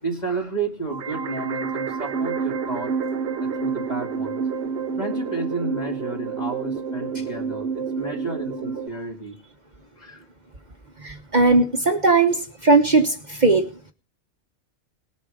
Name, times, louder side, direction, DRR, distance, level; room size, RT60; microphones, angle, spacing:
voice 1, 0.0-2.9 3.4-4.4 5.0-9.4 9.8-10.2, right 3 dB, 35° left, 1 dB, 2.6 m, -32 dB
sound 1, 0.9-8.9, right 6 dB, 65° right, 1.0 m, -28 dB
voice 2, 11.0-13.6, right 3 dB, 40° right, 5 dB, 1.1 m, -18 dB
19.0 x 7.2 x 5.0 m, 0.35 s
omnidirectional pair, 1.2 m